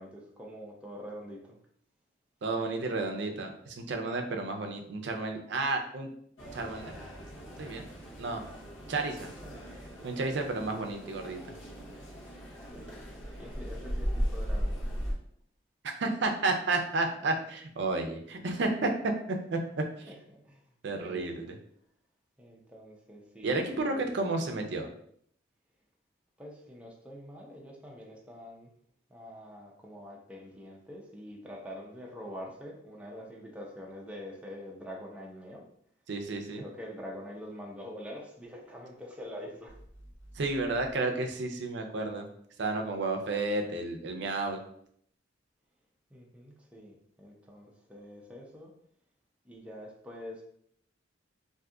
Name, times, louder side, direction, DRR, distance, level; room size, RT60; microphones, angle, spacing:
voice 1, 0.0-1.6 9.2-9.8 12.7-13.0 13.4-14.8 20.3-20.6 21.0-21.5 22.4-24.1 26.4-28.7 29.1-35.7 36.4-39.8 46.1-48.7 49.4-50.4, equal, 5° right, -2 dB, 0.5 m, -45 dB
voice 2, 2.4-6.1 6.5-6.9 7.6-7.8 8.2-8.4 8.9-9.3 10.0-11.4 16.0-19.6 20.0-20.1 20.8-21.5 23.4-24.9 36.1-36.6 40.4-42.3 42.6-44.6, right 3 dB, 65° right, 4 dB, 0.5 m, -31 dB
sound 1, 6.4-15.1, equal, 80° left, 0.9 m, -37 dB
sound 2, 39.7-41.0, right 1 dB, 65° left, 1.1 m, -52 dB
2.6 x 2.3 x 3.7 m, 0.67 s
head